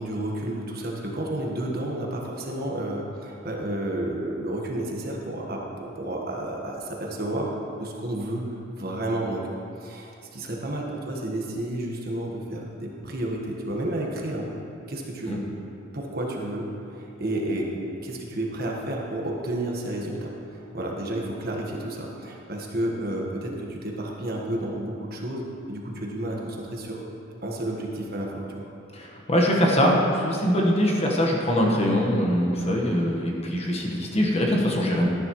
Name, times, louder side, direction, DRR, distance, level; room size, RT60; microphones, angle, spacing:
voice 1, 0.0-7.5 7.8-9.5 9.8-14.5 14.9-15.4 15.9-27.1 27.4-28.7, right 1 dB, 50° right, -1 dB, 1.3 m, -31 dB
voice 2, 28.9-35.1, equal, 30° left, -1 dB, 1.3 m, -22 dB
13.0 x 11.0 x 3.1 m, 2.7 s
head